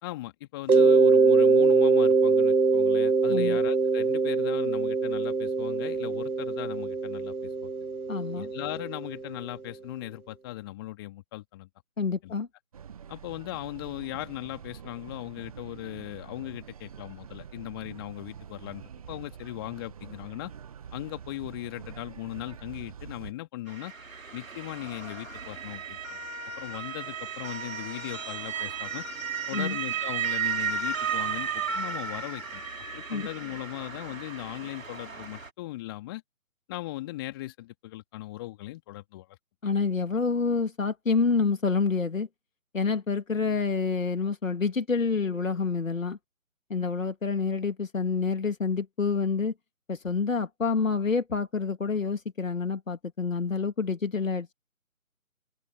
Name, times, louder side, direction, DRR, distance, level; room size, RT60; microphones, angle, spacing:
voice 1, 0.0-7.7 8.3-11.7 12.2-12.3 13.1-20.5 20.9-23.9 24.3-26.2 26.6-29.0 29.5-31.5 31.7-32.6 32.9-36.2 36.7-39.4, left 17 dB, 15° left, 2.8 m, -38 dB
Mallet percussion, 0.7-9.3, right 4 dB, 85° right, 1.7 m, -23 dB
voice 2, 3.3-3.6 8.1-8.5 12.0-12.5 29.5-29.8 33.1-33.3 39.6-42.3 42.7-46.2 46.7-49.5 49.9-54.5, left 4 dB, 65° left, 3.2 m, -28 dB
sound 1, 12.7-23.3, right 8 dB, 25° right, 1.6 m, -45 dB
Motor vehicle (road) / Siren, 23.7-35.5, right 6 dB, 65° right, 3.8 m, -34 dB
figure-of-eight pair, 150°, 43 cm